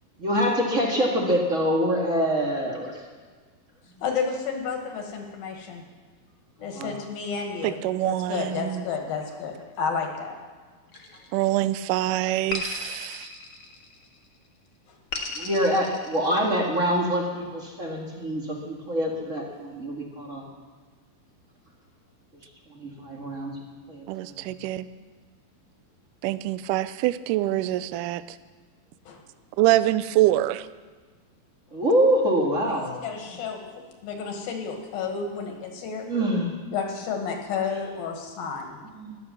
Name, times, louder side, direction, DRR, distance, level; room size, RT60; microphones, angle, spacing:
voice 1, 0.2-2.9 6.6-6.9 15.4-20.4 22.7-23.5 23.9-24.5 31.7-32.9 36.0-36.5 38.9-39.2, equal, 30° right, -1 dB, 1.5 m, -25 dB
voice 2, 4.0-5.8 6.6-7.8 8.0-10.4 29.1-29.2 32.7-33.6 34.0-36.1 36.7-38.8, left 5 dB, 80° left, 3 dB, 3.6 m, -31 dB
voice 3, 7.6-8.9 11.3-13.3 24.1-24.9 26.2-28.4 29.6-30.7, right 15 dB, 80° right, 14 dB, 1.9 m, -25 dB
sound 1, 10.9-11.8 12.5-14.2 15.1-16.8, left 4 dB, 50° left, 1.9 m, -36 dB
14.0 x 11.5 x 7.3 m, 1.5 s
omnidirectional pair, 4.2 m